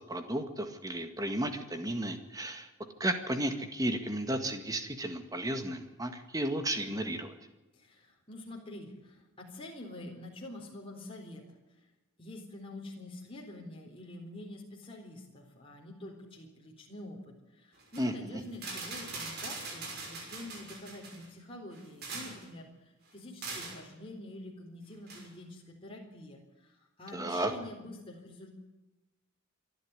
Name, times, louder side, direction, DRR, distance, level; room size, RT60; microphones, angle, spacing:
voice 1, 0.1-2.7 3.0-7.3 18.0-18.4 27.1-27.5, right 1 dB, 15° right, 7 dB, 1.9 m, -33 dB
voice 2, 7.7-11.6 12.2-22.7 23.1-28.5, left 1 dB, 25° left, -1 dB, 3.9 m, -47 dB
sound 1, 17.8-18.1 18.5-21.3 21.7-22.5 23.4-23.8 25.1-25.2, right 3 dB, 45° right, 6.0 m, -41 dB
27.0 x 11.0 x 9.6 m, 1.1 s
head